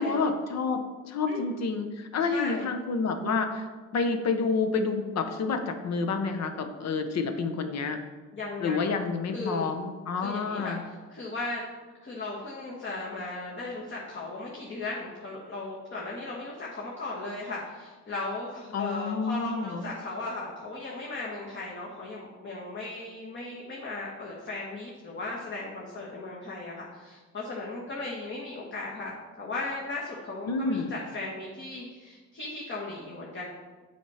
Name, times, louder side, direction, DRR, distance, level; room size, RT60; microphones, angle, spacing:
voice 1, 0.0-3.7 3.9-8.0 8.6-10.8 18.7-19.8 30.5-30.9, left 4 dB, 60° left, 6 dB, 0.8 m, -29 dB
voice 2, 2.3-2.7 8.3-8.9 9.3-9.7 10.2-11.6 12.0-33.5, left 2 dB, 40° left, -4 dB, 1.3 m, -37 dB
7.2 x 4.3 x 4.8 m, 1.3 s
cardioid pair, 90°, 30 cm